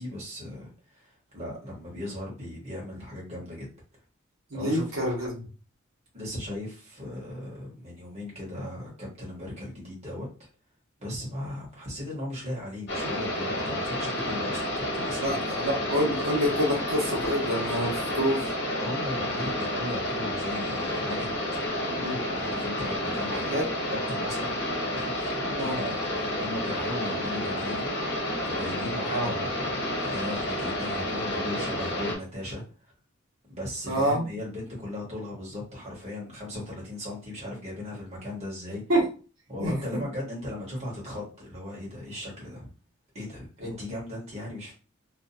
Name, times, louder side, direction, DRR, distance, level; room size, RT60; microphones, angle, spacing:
voice 1, 0.0-3.7 4.5-4.8 6.1-10.5 11.0-15.4 18.8-21.6 22.3-23.6 23.9-24.6 24.9-27.9 28.4-32.6 33.5-38.8 39.5-42.7 43.1-44.7, left 1 dB, 30° right, -4 dB, 1.3 m, -37 dB
voice 2, 4.5-5.4 15.2-18.5 22.0-22.1 23.3-23.6 25.6-25.8 29.1-29.3 33.9-34.2 38.9-39.0 39.6-39.7, equal, 75° right, -2 dB, 1.1 m, -27 dB
sound 1, 12.9-32.2, left 1 dB, 55° left, 0.9 m, -30 dB
2.6 x 2.4 x 2.6 m, 0.35 s
head